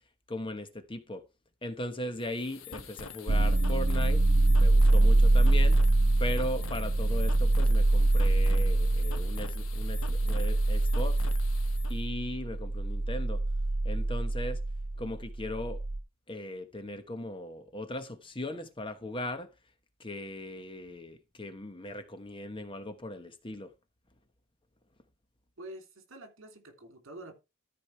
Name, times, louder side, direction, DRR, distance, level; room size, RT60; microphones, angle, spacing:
voice 1, 0.3-1.2 1.6-4.2 4.6-5.8 6.2-11.2 11.9-13.4 13.8-14.6 15.0-15.8 16.3-19.5 20.0-23.7, left 1 dB, 25° left, 1.1 m, -38 dB
sound 1, 2.2-12.0, left 5 dB, 70° left, 1.3 m, -45 dB
sound 2, 3.3-16.0, right 2 dB, 80° right, 1.0 m, -25 dB
voice 2, 25.6-27.3, right 1 dB, 60° right, 2.9 m, -47 dB
13.5 x 5.0 x 4.7 m
head